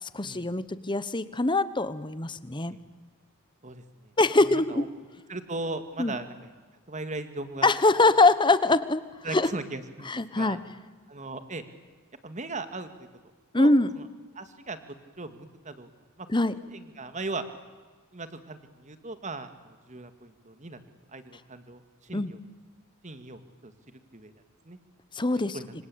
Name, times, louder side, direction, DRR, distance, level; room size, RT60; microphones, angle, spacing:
voice 1, 0.0-2.8 4.2-4.9 6.0-6.2 7.6-9.0 9.3-9.5 10.1-10.6 13.5-13.9 16.3-16.6 22.1-22.3 25.1-25.6, left 2 dB, 20° left, 15 dB, 1.1 m, -23 dB
voice 2, 4.4-4.9 5.3-6.3 6.9-7.7 9.2-10.1 10.4-10.6 11.1-11.6 12.2-12.9 13.6-13.7 14.0-14.1 14.4-14.8 15.2-15.9 16.2-17.4 18.1-20.8 21.1-22.4 23.0-23.7 24.1-24.3 24.7-24.8 25.5-25.7, right 2 dB, 35° right, 10 dB, 2.1 m, -38 dB
26.5 x 26.0 x 8.7 m, 1.4 s
head